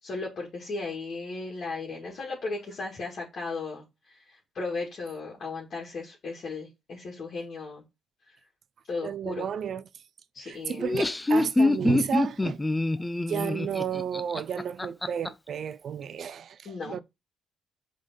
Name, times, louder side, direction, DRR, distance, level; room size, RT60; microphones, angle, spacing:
voice 1, 0.0-7.8 8.9-9.4 10.3-10.8 16.6-17.0, left 3 dB, 50° left, 2.2 m, -36 dB
voice 2, 9.0-9.8 10.4-12.6 13.3-17.0, right 8 dB, 60° right, 0.5 m, -32 dB
Laughter, 10.7-15.3, left 2 dB, 15° left, 0.5 m, -25 dB
5.1 x 3.7 x 5.5 m
cardioid pair, 90°, 0 cm